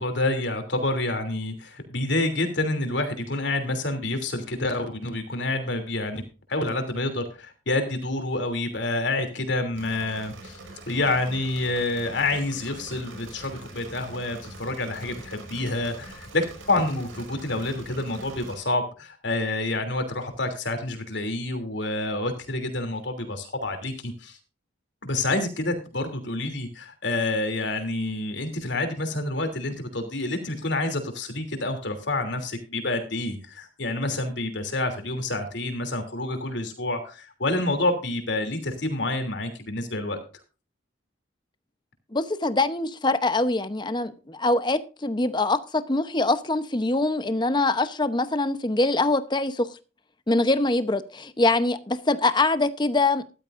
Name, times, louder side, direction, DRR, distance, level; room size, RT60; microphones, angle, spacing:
voice 1, 0.0-6.2 6.5-10.6 10.9-24.4 25.0-40.2, left 2 dB, 65° left, 3.0 m, -28 dB
Engine / Mechanisms, 9.8-18.5, right 2 dB, 90° right, 5.1 m, -43 dB
voice 2, 42.1-49.7 50.3-53.2, left 2 dB, 25° left, 0.8 m, -24 dB
14.0 x 12.5 x 2.6 m
head